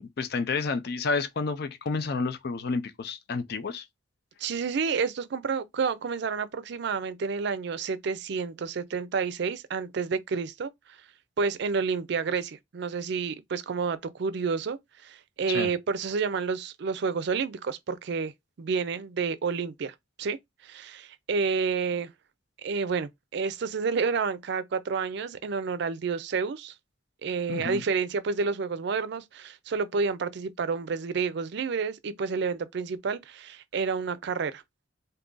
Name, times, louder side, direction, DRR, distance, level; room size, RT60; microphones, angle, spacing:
voice 1, 0.0-3.9 15.5-15.7 27.5-27.8, left 4 dB, 55° left, 0.4 m, -30 dB
voice 2, 4.4-10.7 11.4-18.3 18.6-20.4 20.6-22.1 22.6-26.7 27.2-34.6, right 5 dB, 60° right, 0.4 m, -29 dB
2.7 x 2.4 x 3.7 m
head